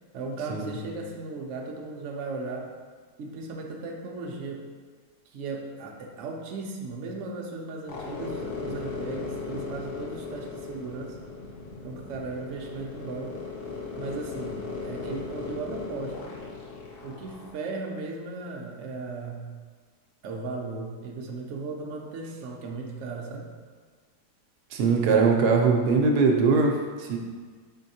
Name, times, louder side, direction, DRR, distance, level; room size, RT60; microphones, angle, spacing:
voice 1, 0.1-2.7 3.2-4.7 5.3-11.2 11.8-13.4 14.0-16.4 17.0-19.5 20.2-23.5, right 3 dB, 65° right, 0 dB, 0.8 m, -36 dB
sound 1, 7.9-17.5, left 4 dB, 65° left, 0.5 m, -37 dB
voice 2, 24.7-27.2, right 4 dB, 80° right, 2 dB, 1.1 m, -21 dB
4.4 x 3.9 x 2.7 m, 1.5 s
omnidirectional pair, 1.7 m